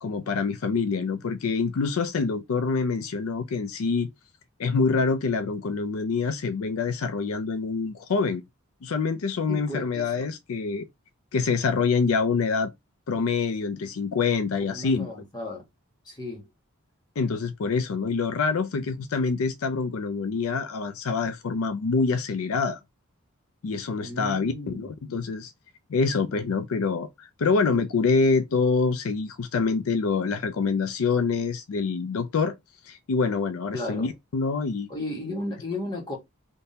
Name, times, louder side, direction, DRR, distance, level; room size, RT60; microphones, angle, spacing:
voice 1, 0.0-4.1 4.6-8.4 8.8-10.9 11.3-12.7 13.1-15.1 17.2-22.8 23.6-25.5 25.9-32.5 32.9-34.9, left 4 dB, 80° left, 0.5 m, -26 dB
voice 2, 9.5-10.3 14.7-15.6 16.0-16.5 24.0-24.9 33.7-34.1 34.9-36.2, left 2 dB, 20° left, 1.4 m, -34 dB
3.5 x 2.6 x 2.7 m
head